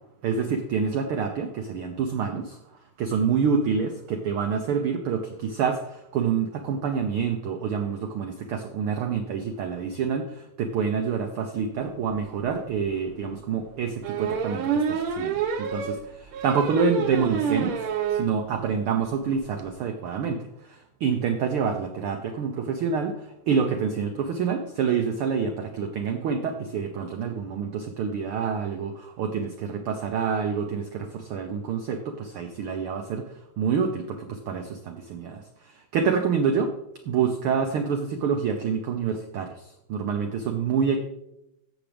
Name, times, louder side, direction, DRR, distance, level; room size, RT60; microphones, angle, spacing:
voice 1, 0.2-2.6 3.0-33.3 33.6-36.7 37.0-41.0, right 6 dB, 85° right, 6 dB, 1.2 m, -27 dB
sound 1, 12.3-12.4 12.7-12.8 14.0-18.3 18.7-18.8 19.1-19.2 19.3-19.6, right 7 dB, 65° right, 1.5 m, -28 dB
15.0 x 7.1 x 3.4 m, 0.84 s
omnidirectional pair, 3.4 m